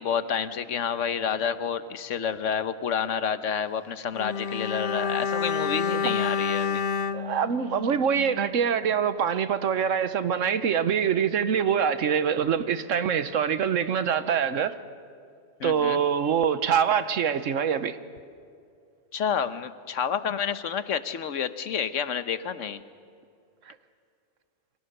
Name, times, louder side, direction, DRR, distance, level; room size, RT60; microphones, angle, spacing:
voice 1, 0.0-6.8 15.6-16.0 19.1-22.8, left 7 dB, 70° left, 1.3 m, -29 dB
Bowed string instrument, 4.1-8.6 8.8-9.0, left 6 dB, 50° left, 0.7 m, -29 dB
voice 2, 7.1-14.8 15.6-18.0 23.7-23.8, right 7 dB, 75° right, 1.2 m, -24 dB
28.5 x 25.0 x 6.7 m
omnidirectional pair, 1.3 m